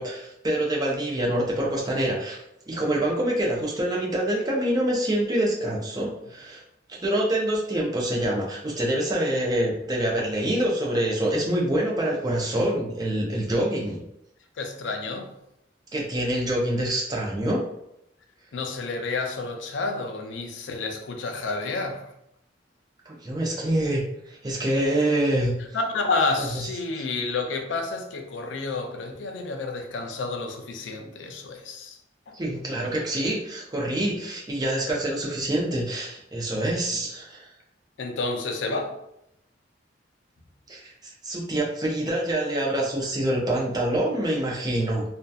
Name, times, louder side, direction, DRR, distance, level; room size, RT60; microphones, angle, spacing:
voice 1, 0.0-6.6 6.9-14.0 15.9-17.6 23.1-24.0 24.3-25.5 26.4-26.7 32.3-37.5 40.7-40.9 41.2-45.0, right 1 dB, 20° right, -2 dB, 0.5 m, -26 dB
voice 2, 14.6-15.3 18.5-22.1 25.7-32.0 32.3-32.4 38.0-38.9, left 3 dB, 85° left, 4 dB, 0.4 m, -30 dB
2.6 x 2.2 x 2.3 m, 0.79 s
head